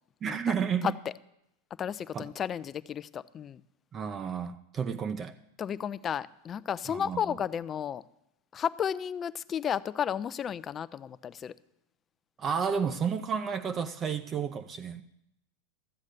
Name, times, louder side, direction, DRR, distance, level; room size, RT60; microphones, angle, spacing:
voice 1, 0.2-0.9 2.1-2.3 3.9-5.3 6.9-7.4 12.4-15.0, right 6 dB, 30° right, 0.6 m, -31 dB
voice 2, 1.8-3.6 5.6-8.0 8.5-11.5, left 8 dB, 30° left, 0.4 m, -33 dB
13.0 x 7.3 x 6.6 m
hypercardioid pair, 115°, 0 cm